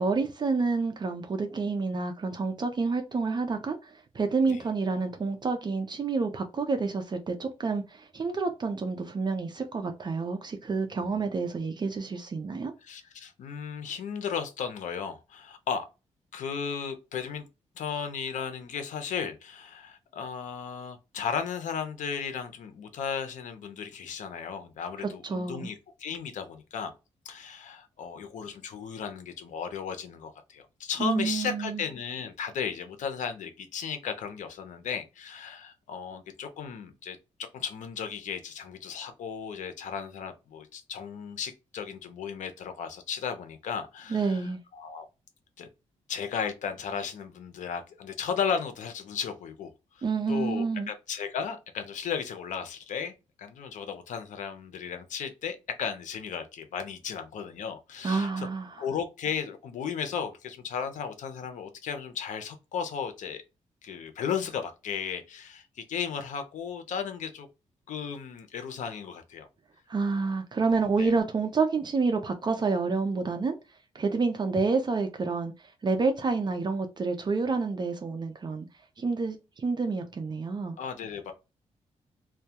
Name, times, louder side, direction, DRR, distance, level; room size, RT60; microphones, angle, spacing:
voice 1, 0.0-12.7 25.2-25.7 31.0-31.8 44.1-44.6 50.0-50.9 58.0-58.8 69.9-73.5 73.9-78.7 79.0-80.8, right 4 dB, 35° right, 0.5 m, -29 dB
voice 2, 12.8-15.9 16.3-17.4 17.8-26.9 27.2-37.2 37.5-45.1 45.6-45.7 46.1-49.7 49.9-58.5 58.8-63.4 63.8-67.5 67.9-69.5 71.0-71.1 80.8-81.3, left 7 dB, 80° left, 0.6 m, -35 dB
2.2 x 2.1 x 2.7 m
cardioid pair, 95°, 13 cm